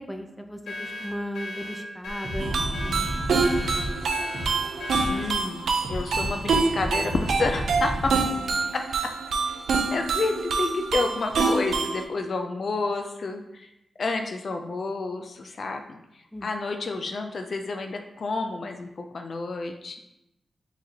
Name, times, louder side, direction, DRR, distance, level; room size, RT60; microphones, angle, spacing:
voice 1, 0.0-2.5 2.8-3.1 8.1-8.4 16.3-16.5, equal, 5° left, 5 dB, 0.5 m, -36 dB
sound 1, 0.7-5.3, left 1 dB, 90° left, 0.7 m, -37 dB
sound 2, 2.1-5.3 5.8-8.2, equal, 60° right, 1.2 m, -32 dB
sound 3, 2.4-12.0, right 4 dB, 85° right, 0.4 m, -26 dB
voice 2, 5.1-5.6 5.9-7.9 9.4-13.7 14.0-20.0, left 3 dB, 60° left, 4 dB, 0.3 m, -30 dB
4.7 x 3.1 x 2.8 m, 0.88 s
cardioid pair, 70°, 0 cm